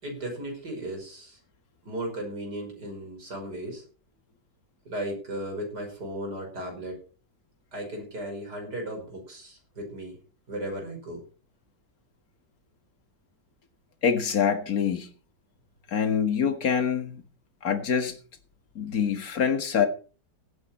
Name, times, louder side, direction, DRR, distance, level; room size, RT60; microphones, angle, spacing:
voice 1, 0.0-1.4 1.8-3.8 4.9-7.0 7.7-10.2 10.5-11.2, right 1 dB, 60° right, 6.0 m, -36 dB
voice 2, 14.0-15.1 15.9-17.2 17.6-18.2 18.8-19.9, left 7 dB, 50° left, 2.2 m, -25 dB
17.5 x 9.4 x 4.4 m
omnidirectional pair, 2.0 m